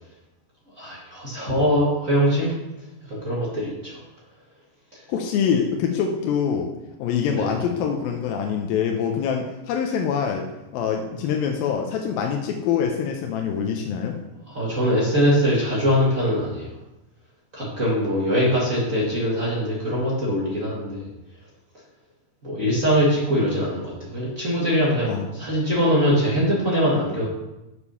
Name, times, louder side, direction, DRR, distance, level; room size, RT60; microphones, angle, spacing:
voice 1, 0.8-2.5 3.1-4.0 7.3-7.5 14.5-16.7 17.5-21.1 22.4-27.3, equal, 50° right, -6 dB, 0.9 m, -22 dB
voice 2, 5.1-6.7 7.0-10.5 10.7-14.2 25.1-25.3 25.7-25.8, left 7 dB, 80° left, 2 dB, 2.2 m, -25 dB
7.1 x 6.5 x 5.6 m, 0.97 s
omnidirectional pair, 4.9 m